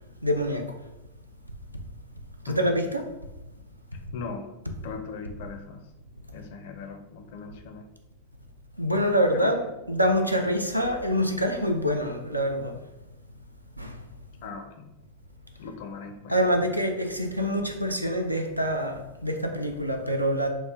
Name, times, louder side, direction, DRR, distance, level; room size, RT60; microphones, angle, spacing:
voice 1, 0.2-0.8 2.4-3.0 8.8-9.6 9.9-12.8 13.8-14.0 16.3-20.5, equal, 90° right, 4 dB, 0.4 m, -25 dB
voice 2, 2.5-2.9 4.1-4.5 4.8-5.9 6.3-7.8 9.3-9.8 14.4-14.9 15.6-16.6, left 5 dB, 50° left, 5 dB, 0.4 m, -39 dB
3.0 x 2.1 x 3.5 m, 0.96 s
figure-of-eight pair, 90°, 0 cm